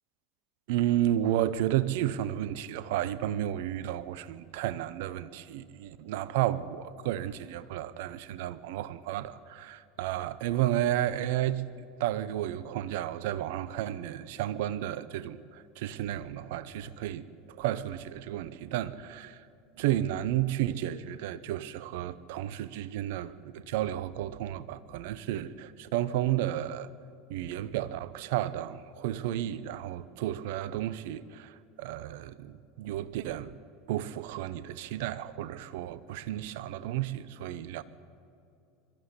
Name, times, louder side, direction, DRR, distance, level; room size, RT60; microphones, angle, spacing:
voice 1, 0.7-11.6 12.0-17.2 17.6-19.4 19.8-26.9 27.3-33.5 33.9-37.8, right 12 dB, 65° right, 0.8 m, -32 dB
22.0 x 13.5 x 9.8 m
hypercardioid pair, 80°, 0 cm